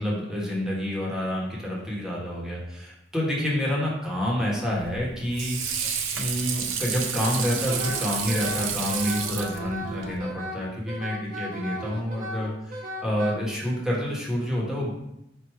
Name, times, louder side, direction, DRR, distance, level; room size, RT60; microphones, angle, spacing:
voice 1, 0.0-5.9 6.2-14.9, equal, 5° right, -4 dB, 1.1 m, -28 dB
Water / Sink (filling or washing), 4.7-10.2, right 6 dB, 85° right, 0.5 m, -31 dB
Wind instrument woodwind instrument, 7.7-13.3, equal, 45° right, 0.8 m, -36 dB
4.6 x 2.5 x 4.4 m, 0.84 s
head